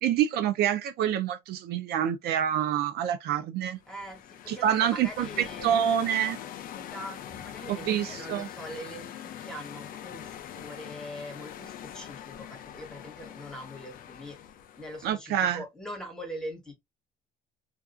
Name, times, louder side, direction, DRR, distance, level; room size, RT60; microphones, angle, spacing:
voice 1, 0.0-3.8 4.5-5.3 5.6-6.4 7.7-8.5 15.0-15.6, right 10 dB, 70° right, 0.5 m, -27 dB
sound 1, 3.8-15.1, left 10 dB, 55° left, 0.4 m, -43 dB
voice 2, 3.9-5.7 6.7-14.4 14.8-16.7, equal, 5° left, 1.2 m, -42 dB
2.5 x 2.3 x 2.4 m
cardioid pair, 110°, 17 cm